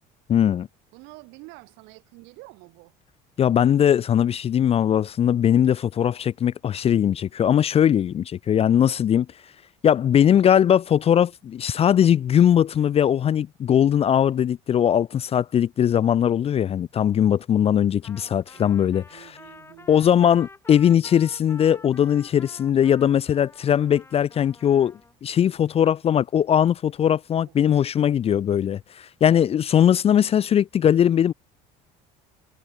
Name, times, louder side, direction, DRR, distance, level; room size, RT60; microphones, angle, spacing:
voice 1, 0.3-0.7 3.4-9.3 9.8-19.2 19.9-31.3, left 9 dB, 35° left, 0.4 m, -20 dB
voice 2, 0.9-2.9 18.5-20.1 27.4-27.8, right 26 dB, 80° right, 2.8 m, -48 dB
Trumpet, 18.0-25.1, left 3 dB, 15° left, 1.0 m, -48 dB
supercardioid pair, 95°, 19 cm